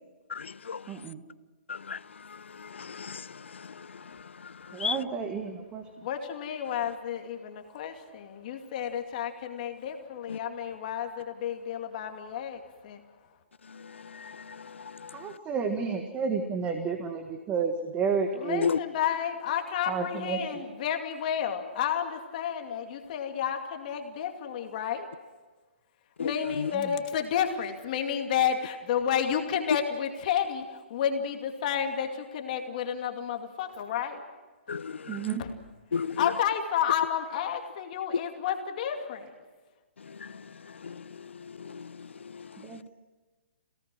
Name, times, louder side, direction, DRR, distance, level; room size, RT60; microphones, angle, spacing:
voice 1, 0.3-1.0 1.7-5.0 10.3-10.4 13.7-15.4 18.6-18.8 26.2-26.7 34.7-35.4 35.9-36.3 40.0-42.7, left 6 dB, 85° left, 0.7 m, -36 dB
voice 2, 0.9-1.2 4.7-5.8 15.1-18.7 19.9-20.7 26.7-26.9 35.1-35.4 42.6-42.8, right 5 dB, 20° right, 1.7 m, -31 dB
voice 3, 6.0-13.0 18.3-25.1 26.2-30.6 30.9-34.2 35.4-35.5 36.2-39.3, left 8 dB, 40° left, 2.4 m, -31 dB
28.0 x 18.0 x 6.2 m
hypercardioid pair, 150°, 6 cm